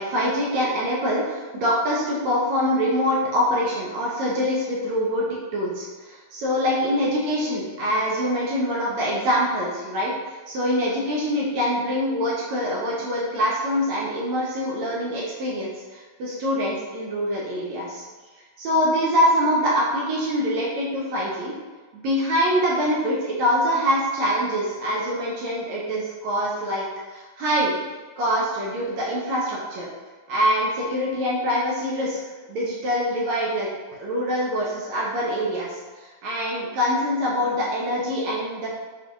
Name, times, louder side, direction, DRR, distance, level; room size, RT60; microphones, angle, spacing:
voice 1, 0.0-5.3 5.5-18.0 18.6-21.5 21.9-26.9 27.1-27.7 28.2-29.9 30.3-32.2 32.5-38.7, equal, 70° right, -5 dB, 1.8 m, -24 dB
5.9 x 2.5 x 3.5 m, 1.4 s
omnidirectional pair, 3.8 m